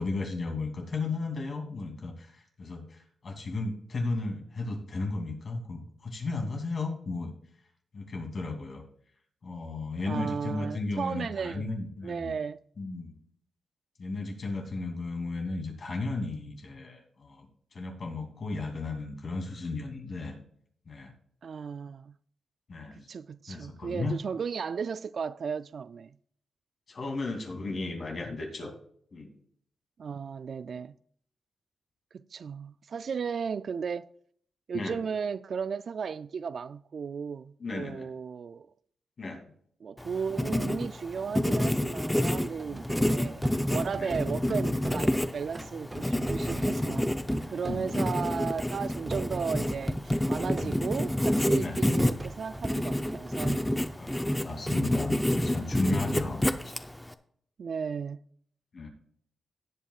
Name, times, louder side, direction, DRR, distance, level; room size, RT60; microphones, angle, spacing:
voice 1, 0.0-7.3 7.9-8.8 9.4-12.3 12.8-13.2 14.0-17.5 17.7-20.3 20.9-21.1 22.7-23.1 23.5-24.2 26.9-28.7 29.1-29.3 34.7-35.0 37.6-38.1 39.2-39.5 42.7-42.8 43.9-44.1 47.6-48.0 50.6-50.8 51.6-51.8 54.0-56.7 58.7-58.9, left 3 dB, 55° left, 2.7 m, -35 dB
voice 2, 10.1-11.7 12.0-12.6 21.4-22.2 23.0-26.1 30.0-30.9 32.1-34.1 34.7-38.7 39.8-43.4 43.7-47.1 47.5-53.9 57.6-58.2, right 6 dB, 65° right, 0.3 m, -35 dB
Writing, 40.0-57.1, left 1 dB, 10° left, 0.6 m, -29 dB
sound 1, 42.6-52.8 53.1-54.8, right 2 dB, 30° right, 0.7 m, -41 dB
17.5 x 8.3 x 2.4 m
cardioid pair, 90°, 0 cm